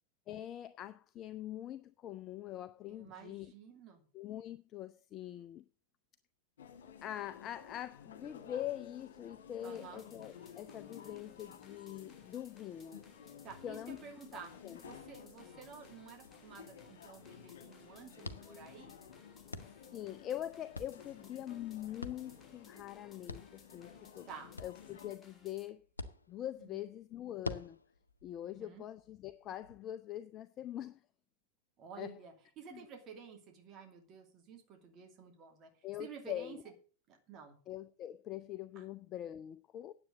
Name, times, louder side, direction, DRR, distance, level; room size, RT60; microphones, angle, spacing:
voice 1, 0.3-3.5 4.1-5.6 7.0-13.0 13.6-14.0 14.3-14.8 19.9-24.3 24.6-25.8 26.3-27.8 28.2-31.0 32.0-32.2 32.7-32.8 35.8-36.6 37.7-39.9, left 12 dB, 30° left, 0.5 m, -43 dB
voice 2, 2.9-4.0 9.6-10.0 13.4-14.5 14.8-18.9 24.3-24.5 26.6-26.7 28.4-28.8 31.8-36.6 37.1-37.6 38.8-38.9, right 6 dB, 35° right, 2.5 m, -52 dB
sound 1, 6.6-25.2, left 7 dB, 60° left, 1.8 m, -54 dB
sound 2, 9.6-25.7, left 3 dB, 15° left, 2.5 m, -64 dB
sound 3, 15.7-29.7, left 2 dB, 80° left, 0.8 m, -50 dB
9.7 x 7.8 x 7.9 m
figure-of-eight pair, 90°, 0 cm